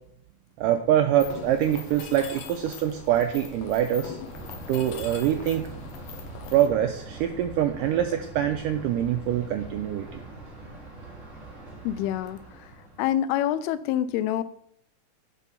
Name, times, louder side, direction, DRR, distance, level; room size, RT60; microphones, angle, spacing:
voice 1, 0.6-4.2 4.7-5.7 6.5-10.2, right 11 dB, 90° right, 6 dB, 1.9 m, -24 dB
Mechanisms, 1.2-6.7, left 7 dB, 70° left, 2.3 m, -41 dB
Thunder, 4.2-13.0, right 2 dB, 20° right, 2.8 m, -42 dB
voice 2, 11.8-12.7 13.0-14.4, left 11 dB, 90° left, 15 dB, 2.5 m, -26 dB
8.4 x 6.2 x 5.7 m, 0.67 s
omnidirectional pair, 4.4 m